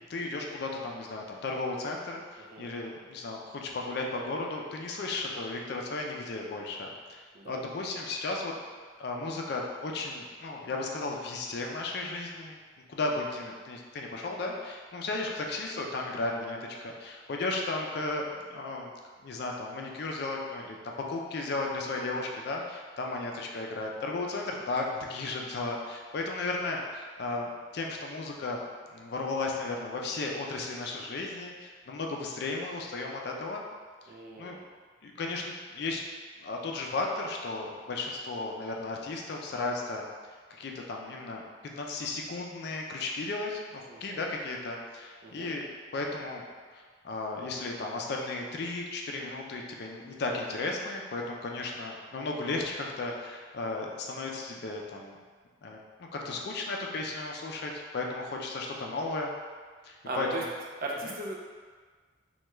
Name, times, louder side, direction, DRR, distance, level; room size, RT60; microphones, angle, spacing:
voice 1, 0.1-8.5 9.0-12.6 12.9-18.9 19.2-28.6 28.9-33.6 34.4-34.6 35.0-36.0 36.4-40.1 40.5-41.4 41.8-45.7 45.9-46.4 46.7-55.2 55.6-55.8 56.1-59.3 59.8-60.4 61.1-61.2, left 3 dB, 55° left, 0 dB, 0.4 m, -35 dB
voice 2, 34.1-34.6 43.9-44.2 45.2-45.5 56.3-56.4 60.0-60.4 60.8-61.4, right 2 dB, 50° right, -2 dB, 0.4 m, -37 dB
3.3 x 2.2 x 3.0 m, 1.5 s
head